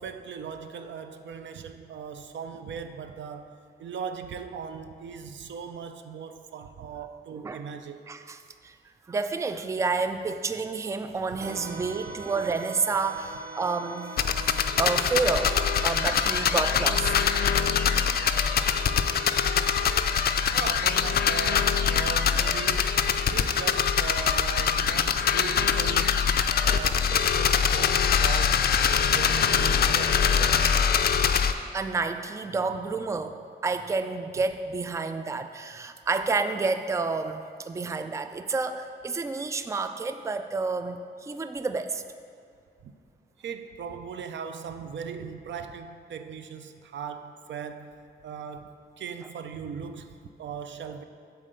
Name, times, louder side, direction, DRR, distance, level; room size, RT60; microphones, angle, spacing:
voice 1, 0.0-8.0 11.8-11.9 20.5-26.1 26.6-28.6 29.0-30.7 42.8-42.9 43.4-47.9 48.2-51.0, right 6 dB, 85° right, 8 dB, 0.5 m, -39 dB
voice 2, 8.1-8.7 9.1-14.2 14.8-15.5 15.8-17.3 31.7-33.4 33.6-42.0, right 4 dB, 15° right, 9 dB, 0.3 m, -29 dB
sound 1, 11.4-20.8, right 3 dB, 60° right, 0.8 m, -42 dB
sound 2, 14.2-31.5, left 7 dB, 60° left, 0.4 m, -23 dB
7.4 x 4.3 x 6.7 m, 2.3 s
wide cardioid pair, 100°, 18 cm